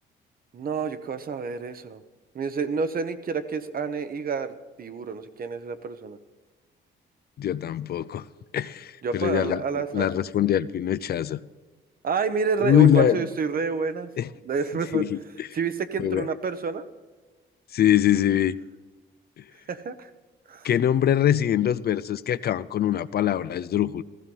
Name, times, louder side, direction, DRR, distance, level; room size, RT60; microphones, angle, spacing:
voice 1, 0.5-2.0 2.3-6.2 9.0-10.1 12.0-14.1 14.4-15.1 15.5-16.9 19.7-20.1 20.5-20.7, right 5 dB, 45° right, 11 dB, 1.0 m, -29 dB
voice 2, 7.4-8.2 8.5-11.4 12.6-13.3 14.2-14.3 14.9-15.5 16.0-16.3 17.7-18.5 20.6-24.0, left 10 dB, 55° left, 16 dB, 0.5 m, -23 dB
15.0 x 14.5 x 5.5 m, 1.2 s
cardioid pair, 90°, 20 cm